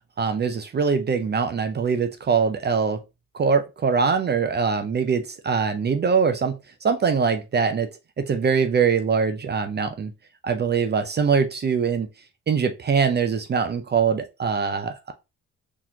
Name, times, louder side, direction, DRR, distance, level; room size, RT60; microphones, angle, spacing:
voice 1, 0.2-3.0 3.3-7.9 8.2-10.1 10.4-12.1 12.5-15.1, right 5 dB, 35° right, 0.5 m, -23 dB
4.1 x 3.0 x 2.7 m
cardioid pair, 90°, 30 cm